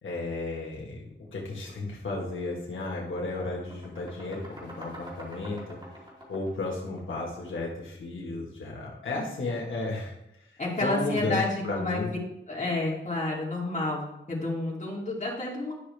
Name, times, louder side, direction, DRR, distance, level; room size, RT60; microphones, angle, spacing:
voice 1, 0.0-5.8 6.3-12.1, left 2 dB, 85° left, -3 dB, 1.5 m, -33 dB
sound 1, 2.3-2.4 2.8-7.7, equal, 25° right, 3.1 m, -46 dB
voice 2, 10.6-12.0 12.5-14.0 14.3-15.7, left 2 dB, 40° left, -4 dB, 2.7 m, -30 dB
11.5 x 6.0 x 3.3 m, 0.86 s
wide cardioid pair, 100°, 20 cm